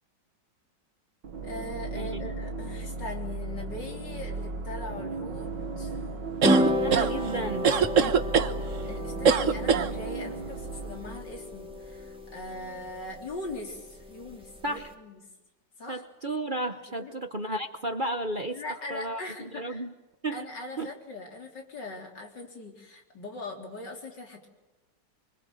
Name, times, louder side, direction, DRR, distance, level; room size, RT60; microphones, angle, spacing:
sound 1, 1.2-12.0, right 3 dB, 80° right, 2.2 m, -36 dB
voice 1, 1.4-5.5 5.8-6.0 8.8-15.2 15.8-16.0 17.0-17.1 18.5-19.8 20.3-24.5, left 2 dB, 70° left, 2 dB, 4.5 m, -40 dB
voice 2, 1.9-2.3 6.8-7.7 14.6-14.9 15.9-19.9 20.2-20.5 20.8-20.9, right 1 dB, 35° right, 7 dB, 1.1 m, -33 dB
sound 2, 6.4-14.9, equal, 5° right, 2.7 m, -32 dB
sound 3, 6.4-7.1 7.6-8.5 9.3-9.9, right 6 dB, 50° right, 1.4 m, -22 dB
26.0 x 24.5 x 7.8 m, 1.1 s
omnidirectional pair, 1.9 m